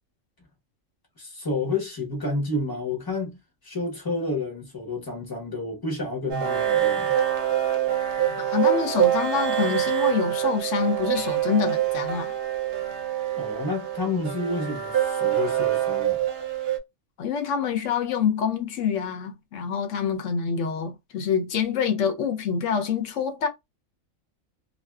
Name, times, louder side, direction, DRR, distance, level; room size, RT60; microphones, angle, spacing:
voice 1, 1.2-7.1 13.4-16.2, left 2 dB, 20° left, 0.8 m, -30 dB
sound 1, 6.3-16.8, right 11 dB, 60° right, 0.7 m, -25 dB
voice 2, 8.3-12.3 17.2-23.5, left 7 dB, 65° left, 1.0 m, -26 dB
2.6 x 2.3 x 2.3 m
omnidirectional pair, 1.5 m